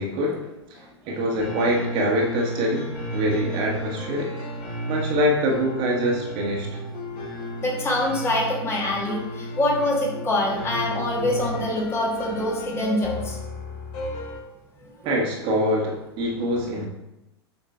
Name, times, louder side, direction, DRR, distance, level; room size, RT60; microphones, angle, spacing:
voice 1, 0.0-4.3 4.9-6.7 15.0-16.9, equal, 35° right, -1 dB, 1.4 m, -25 dB
sound 1, 1.3-14.4, equal, 35° left, 2.4 m, -33 dB
voice 2, 7.6-13.4 14.8-14.9, left 1 dB, 20° left, -2 dB, 1.5 m, -25 dB
7.2 x 4.9 x 3.4 m, 0.91 s
figure-of-eight pair, 95°, 14 cm